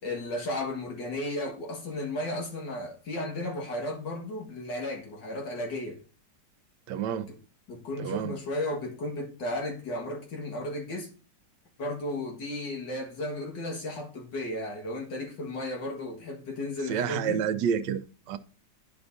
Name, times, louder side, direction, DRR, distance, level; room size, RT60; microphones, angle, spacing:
voice 1, 0.0-6.0 7.3-7.4 7.7-11.1 11.8-17.4, left 1 dB, 90° left, 2.4 m, -34 dB
voice 2, 6.9-7.3 8.0-8.4 16.9-18.4, right 8 dB, 85° right, 1.2 m, -29 dB
10.5 x 5.2 x 2.7 m
omnidirectional pair, 1.9 m